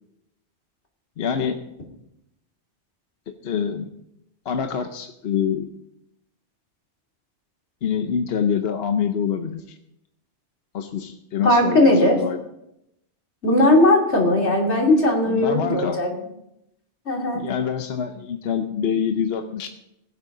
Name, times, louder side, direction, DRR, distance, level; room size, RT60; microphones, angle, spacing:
voice 1, 1.2-1.6 3.3-3.9 4.4-5.7 7.8-9.8 10.7-12.4 15.3-16.0 17.3-19.7, left 7 dB, 70° left, 7 dB, 1.0 m, -26 dB
voice 2, 11.4-12.2 13.4-16.1 17.1-17.5, left 1 dB, 90° left, 0 dB, 3.0 m, -18 dB
20.5 x 8.3 x 3.8 m, 0.81 s
omnidirectional pair, 1.1 m